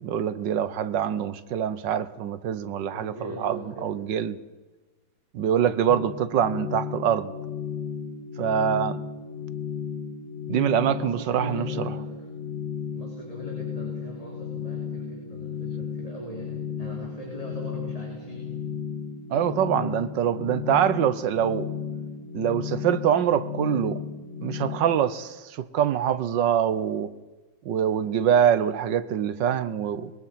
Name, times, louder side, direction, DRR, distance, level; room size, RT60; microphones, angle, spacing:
voice 1, 0.0-4.4 5.3-7.3 8.4-9.0 10.5-11.9 19.3-21.7 22.3-24.0 24.4-27.1 27.6-30.1, right 9 dB, 70° right, 1.4 m, -24 dB
voice 2, 2.9-3.9 10.8-12.2 12.9-18.6, equal, 15° left, 4.6 m, -41 dB
sound 1, 5.9-24.8, left 7 dB, 70° left, 7.0 m, -34 dB
24.0 x 22.0 x 5.8 m
omnidirectional pair, 2.1 m